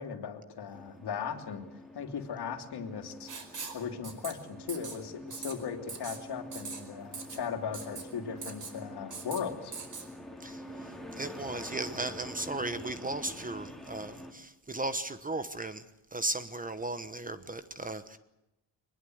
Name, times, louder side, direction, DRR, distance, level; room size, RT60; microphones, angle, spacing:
voice 1, 0.0-1.6 1.9-3.3 3.7-9.7, left 7 dB, 55° left, 5 dB, 3.2 m, -38 dB
sound 1, 0.7-14.3, equal, ahead, 3.3 m, -47 dB
Writing, 3.3-4.3 4.7-5.0 5.3-5.5 5.9-6.2 6.5-6.8 7.1-7.4 7.7-8.0 8.4-8.7 9.1-9.4 9.7-10.1, right 5 dB, 40° right, 4.9 m, -41 dB
voice 2, 10.4-15.8 16.1-18.2, right 2 dB, 20° right, 11 dB, 1.1 m, -36 dB
24.0 x 21.0 x 8.0 m, 0.90 s
cardioid pair, 150°, 46 cm